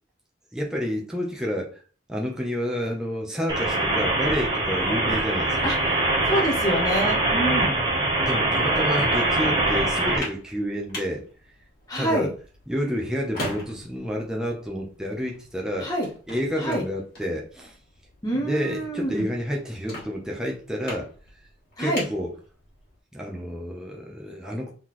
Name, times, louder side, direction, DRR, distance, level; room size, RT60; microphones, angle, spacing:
voice 1, 0.5-1.7 2.1-5.7 8.2-11.2 11.9-12.3 12.7-15.9 16.3-17.8 18.4-21.1 21.8-22.3 23.1-24.7, equal, 5° right, -1 dB, 0.9 m, -29 dB
sound 1, 3.5-10.2, right 2 dB, 20° right, 1.2 m, -23 dB
voice 2, 6.3-7.8 11.9-12.3 15.8-16.1 16.6-16.8 18.2-19.3 21.8-22.1, right 1 dB, 20° left, -4 dB, 1.1 m, -26 dB
sound 2, 9.9-23.0, left 1 dB, 50° left, 2.2 m, -41 dB
4.0 x 4.0 x 3.1 m, 0.39 s
head